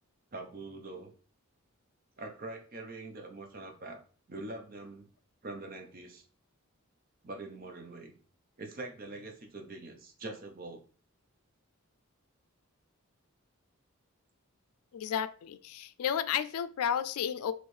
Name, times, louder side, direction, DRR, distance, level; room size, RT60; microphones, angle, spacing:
voice 1, 0.3-1.1 2.2-4.0 4.3-5.1 5.4-6.3 7.2-8.1 8.6-10.8, right 2 dB, 40° right, 5 dB, 0.6 m, -43 dB
voice 2, 14.9-17.5, left 9 dB, 80° left, 13 dB, 0.3 m, -32 dB
4.4 x 3.1 x 3.2 m, 0.41 s
head